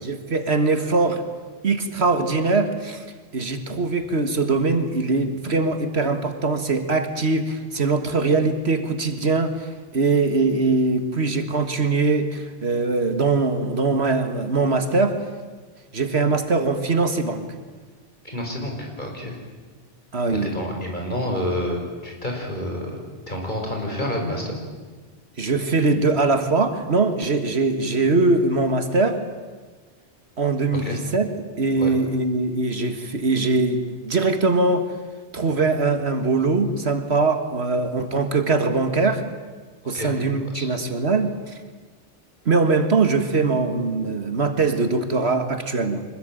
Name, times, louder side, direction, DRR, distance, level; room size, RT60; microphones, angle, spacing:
voice 1, 0.0-1.2 1.6-3.0 3.3-15.2 15.9-17.5 20.1-20.6 25.4-29.2 30.4-31.3 31.6-34.9 35.3-39.2 39.9-41.6 42.5-46.1, right 3 dB, 70° right, 8 dB, 2.0 m, -22 dB
voice 2, 18.2-19.4 20.3-23.0 23.3-24.6 30.8-30.9 31.8-31.9 39.9-40.1 40.5-40.7, left 1 dB, 45° left, 1 dB, 6.0 m, -28 dB
25.0 x 21.0 x 9.1 m, 1.4 s
omnidirectional pair, 1.1 m